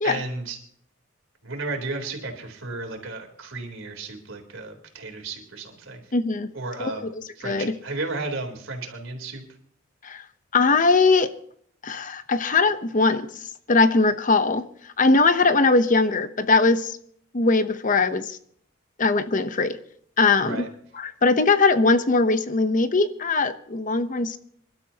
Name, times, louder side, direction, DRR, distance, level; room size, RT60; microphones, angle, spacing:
voice 1, 0.0-0.6 1.4-6.0 6.5-7.0 7.4-9.4 20.4-20.7, right 3 dB, 75° right, 3 dB, 3.7 m, -33 dB
voice 2, 6.1-6.5 6.8-7.7 10.0-10.2 10.5-11.3 11.8-13.3 13.7-14.6 15.0-17.0 17.3-18.4 19.0-19.8 20.2-20.7 20.9-24.4, left 3 dB, 40° left, 11 dB, 0.8 m, -20 dB
27.0 x 12.0 x 2.9 m, 0.64 s
head